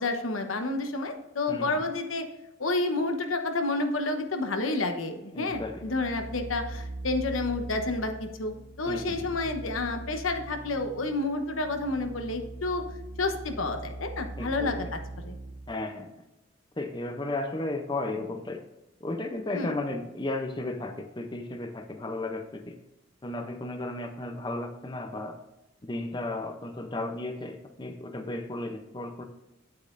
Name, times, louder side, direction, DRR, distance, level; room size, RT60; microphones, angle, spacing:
voice 1, 0.0-2.2 2.6-12.8 13.2-15.4 19.5-19.7, left 2 dB, 80° left, 6 dB, 1.0 m, -30 dB
voice 2, 5.3-5.8 8.9-9.4 14.4-14.9 15.7-16.1 16.8-18.6 19.0-22.8 23.2-25.4 25.8-29.2, left 2 dB, 20° left, 6 dB, 0.6 m, -34 dB
sound 1, 5.5-15.7, right 2 dB, 90° right, 0.9 m, -41 dB
8.7 x 8.3 x 2.5 m, 0.99 s
head